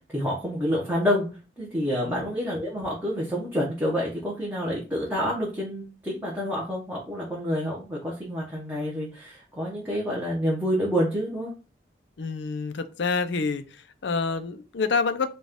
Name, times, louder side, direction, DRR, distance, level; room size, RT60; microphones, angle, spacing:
voice 1, 0.1-1.3 1.6-11.5, equal, 10° right, -5 dB, 0.8 m, -28 dB
voice 2, 12.2-15.3, left 4 dB, 70° left, 10 dB, 0.5 m, -28 dB
4.0 x 2.3 x 3.5 m, 0.33 s
head